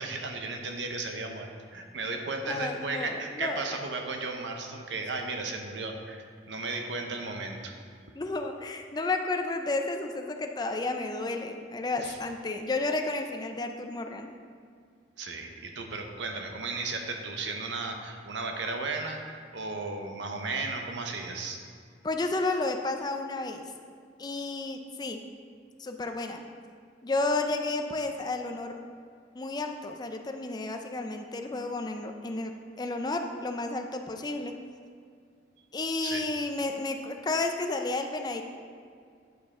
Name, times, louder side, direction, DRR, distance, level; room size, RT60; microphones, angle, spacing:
voice 1, 0.0-7.7 12.0-12.2 15.2-21.6 36.0-36.2, right 3 dB, 80° right, 3 dB, 0.8 m, -35 dB
voice 2, 2.4-3.8 8.2-14.3 22.0-23.6 24.2-25.2 25.8-26.4 27.0-28.8 29.3-34.5 35.7-38.4, left 2 dB, 20° left, 5 dB, 0.4 m, -32 dB
9.0 x 5.2 x 3.6 m, 2.2 s
head